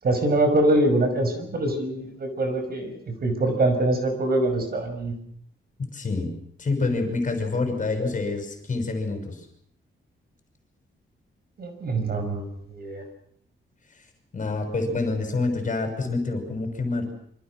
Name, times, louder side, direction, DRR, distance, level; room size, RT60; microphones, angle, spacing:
voice 1, 0.0-5.1 11.6-12.5 12.7-13.0, right 1 dB, 50° right, 7 dB, 5.9 m, -24 dB
voice 2, 5.8-6.3 6.6-9.5 14.3-17.1, left 3 dB, 40° left, 5 dB, 6.1 m, -27 dB
27.0 x 25.5 x 6.2 m, 0.65 s
wide cardioid pair, 155°, 21 cm